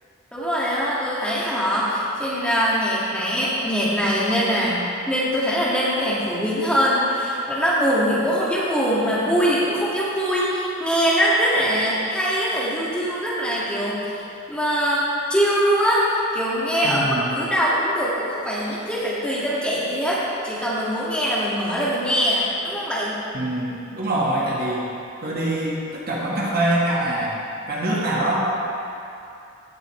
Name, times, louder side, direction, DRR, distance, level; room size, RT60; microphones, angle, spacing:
voice 1, 0.3-14.1 14.5-23.2, equal, 5° left, -8 dB, 2.1 m, -22 dB
voice 2, 16.8-17.3 23.3-24.8 25.2-28.5, right 1 dB, 45° right, -5 dB, 1.6 m, -24 dB
17.0 x 7.5 x 3.3 m, 2.7 s
head